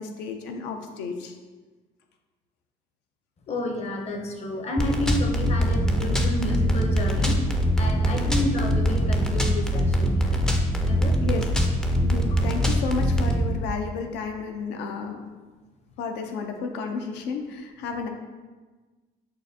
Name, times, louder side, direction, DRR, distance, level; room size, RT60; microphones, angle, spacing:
voice 1, 0.0-1.4 8.2-8.3 11.2-11.5 12.0-15.3 16.0-18.1, left 5 dB, 90° left, 5 dB, 0.5 m, -32 dB
voice 2, 3.5-7.4 7.8-10.4 10.9-11.2 12.3-12.4, left 1 dB, 40° left, 3 dB, 0.6 m, -30 dB
sound 1, 4.8-13.4, equal, 5° left, 0.3 m, -23 dB
6.3 x 2.5 x 2.7 m, 1.3 s
cardioid pair, 110°, 17 cm